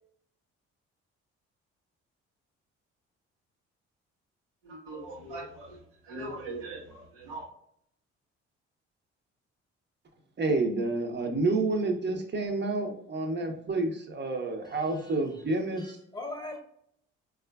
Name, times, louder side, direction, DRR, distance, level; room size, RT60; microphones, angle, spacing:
voice 1, 4.6-7.5, right 2 dB, 85° right, 0.9 m, -41 dB
voice 2, 10.4-16.0, right 2 dB, 35° right, 0.8 m, -29 dB
voice 3, 14.6-15.4 15.8-16.6, left 2 dB, 15° left, 1.0 m, -42 dB
3.6 x 2.4 x 2.3 m
hypercardioid pair, 50°, 33 cm